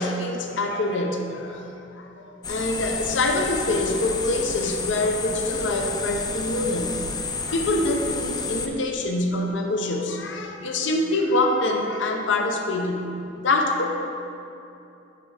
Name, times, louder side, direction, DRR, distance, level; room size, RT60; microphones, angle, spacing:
voice 1, 0.0-1.7 1.9-7.0 7.5-13.2 13.4-13.9, left 2 dB, 75° left, 3 dB, 0.7 m, -25 dB
sound 1, 2.4-8.7, left 4 dB, 20° left, 0.4 m, -30 dB
7.7 x 6.3 x 3.4 m, 2.8 s
head